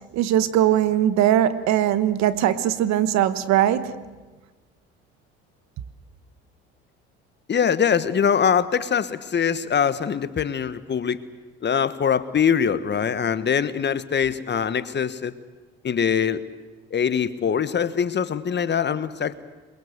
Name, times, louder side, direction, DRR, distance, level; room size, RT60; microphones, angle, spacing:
voice 1, 0.1-3.9, right 11 dB, 70° right, 13 dB, 1.3 m, -20 dB
voice 2, 7.5-11.2 11.6-15.3 15.8-16.4 16.9-19.4, left 7 dB, 35° left, 14 dB, 1.3 m, -23 dB
22.0 x 22.0 x 8.1 m, 1.3 s
supercardioid pair, 70°, 29 cm